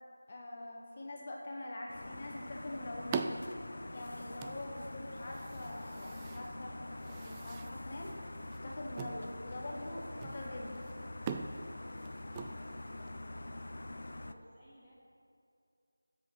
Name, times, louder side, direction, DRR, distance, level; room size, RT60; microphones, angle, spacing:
voice 1, 0.3-3.2 3.9-6.7 7.2-8.1 8.6-10.9, left 1 dB, 30° left, -2 dB, 1.5 m, -44 dB
sound 1, 1.9-14.3, left 1 dB, 55° left, 0.6 m, -45 dB
sound 2, 2.1-13.2, right 5 dB, 15° right, 0.3 m, -45 dB
voice 2, 12.3-13.7 14.2-14.9, equal, 5° left, -13 dB, 1.2 m, -59 dB
12.5 x 7.7 x 5.7 m, 2.6 s
figure-of-eight pair, 170°, 0 cm